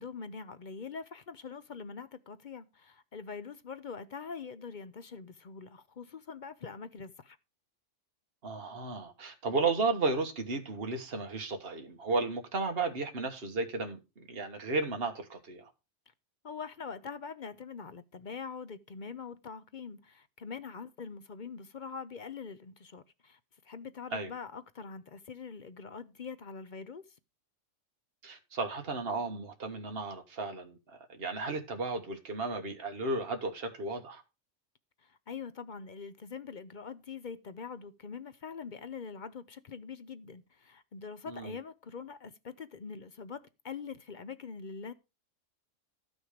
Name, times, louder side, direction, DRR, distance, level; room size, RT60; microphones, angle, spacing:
voice 1, 0.0-7.4 16.4-23.4 23.6-27.0 35.0-44.9, left 5 dB, 45° left, 0.7 m, -44 dB
voice 2, 8.4-15.6 24.1-24.3 28.2-34.2 41.2-41.5, right 3 dB, 50° right, 1.7 m, -34 dB
13.0 x 6.2 x 5.0 m
omnidirectional pair, 1.3 m